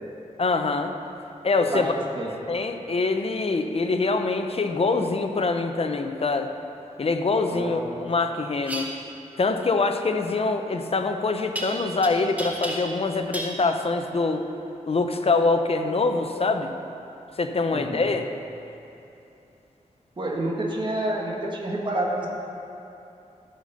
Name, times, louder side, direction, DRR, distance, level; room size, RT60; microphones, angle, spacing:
voice 1, 0.4-0.9 1.4-1.9 2.5-6.5 7.0-8.9 9.4-14.5 14.9-16.7 17.4-18.3, left 3 dB, 45° left, 6 dB, 0.7 m, -24 dB
voice 2, 1.6-2.3 7.5-8.1 17.7-18.1 20.2-22.3, right 1 dB, 35° right, -2 dB, 1.4 m, -29 dB
sound 1, 8.6-8.9 11.6-12.1 12.4-13.0 13.3-13.6, right 1 dB, 10° right, 1.2 m, -32 dB
14.5 x 5.1 x 6.6 m, 2.8 s
wide cardioid pair, 105°, 14 cm